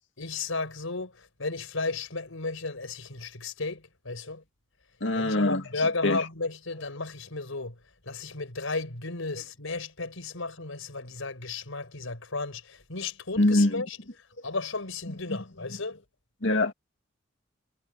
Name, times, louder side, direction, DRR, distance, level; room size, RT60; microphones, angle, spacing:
voice 1, 0.2-4.4 5.1-14.0 14.4-16.0, left 3 dB, 90° left, 4.7 m, -34 dB
voice 2, 5.0-5.6 6.0-6.2 13.4-13.8 16.4-16.7, left 2 dB, 65° left, 2.1 m, -23 dB
head